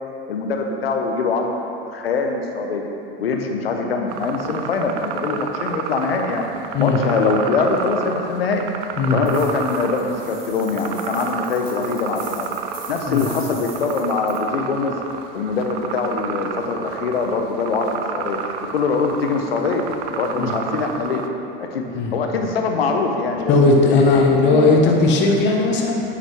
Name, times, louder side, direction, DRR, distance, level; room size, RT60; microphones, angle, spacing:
voice 1, 0.3-1.5 1.9-2.9 3.2-6.4 6.8-8.7 9.1-12.5 12.9-15.0 15.3-18.4 18.7-19.8 20.1-21.2 21.6-21.9 22.1-24.8, left 4 dB, 85° left, 3 dB, 0.7 m, -23 dB
sound 1, 4.1-21.3, right 6 dB, 55° right, 0.5 m, -31 dB
sound 2, 9.3-14.4, right 4 dB, 85° right, 1.1 m, -42 dB
voice 2, 23.5-26.0, left 3 dB, 40° left, 0 dB, 0.9 m, -17 dB
9.1 x 3.9 x 3.1 m, 2.8 s
hypercardioid pair, 85°, 29 cm